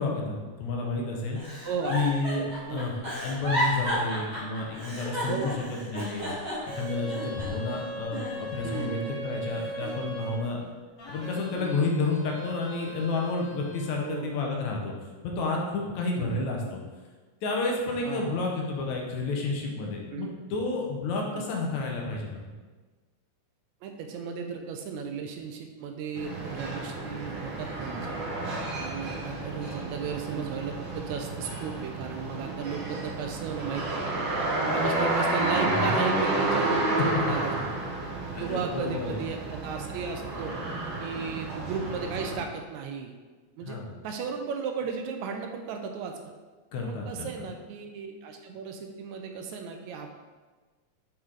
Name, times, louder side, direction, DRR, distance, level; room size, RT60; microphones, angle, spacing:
voice 1, 0.0-1.6 1.9-2.9 3.2-5.5 5.9-6.3 6.7-9.0 9.2-10.6 11.1-14.9 15.2-16.8 17.4-22.5 35.8-36.0 38.3-39.2 40.5-40.7 43.6-43.9 46.7-47.3, left 3 dB, 75° left, 0 dB, 2.2 m, -30 dB
Giggle, 1.3-7.7 8.1-9.1 9.5-10.6 11.2-11.5, equal, 20° right, 1.3 m, -33 dB
voice 2, 1.6-2.0 2.7-3.0 5.3-5.5 8.6-9.1 11.6-11.9 14.0-14.6 16.2-16.5 18.0-18.4 20.1-20.3 21.3-21.5 23.8-28.2 28.8-34.1 34.6-37.7 38.4-40.5 41.0-43.2 43.6-46.2 46.8-50.2, right 6 dB, 80° right, 4 dB, 1.8 m, -35 dB
sound 1, 6.4-10.5 11.0-14.0, equal, 55° left, 2.3 m, -39 dB
sound 2, 26.2-42.4, right 2 dB, 55° right, 1.6 m, -31 dB
6.6 x 4.5 x 3.7 m, 1.3 s
omnidirectional pair, 3.4 m